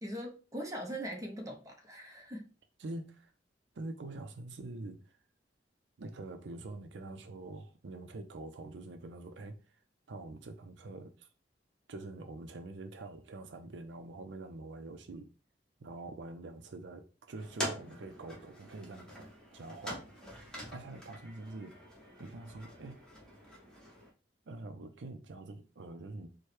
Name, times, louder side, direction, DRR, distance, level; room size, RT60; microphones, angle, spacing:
voice 1, 0.0-2.5, equal, 20° right, 0.8 m, -41 dB
voice 2, 2.8-3.3 3.8-5.0 6.0-9.6 10.1-11.3 11.9-15.3 15.8-19.3 19.5-20.0 20.7-21.8 22.2-23.0 24.5-26.3, right 2 dB, 85° right, 0.5 m, -45 dB
sound 1, 17.4-24.1, equal, 5° left, 1.1 m, -45 dB
4.4 x 2.2 x 3.2 m
head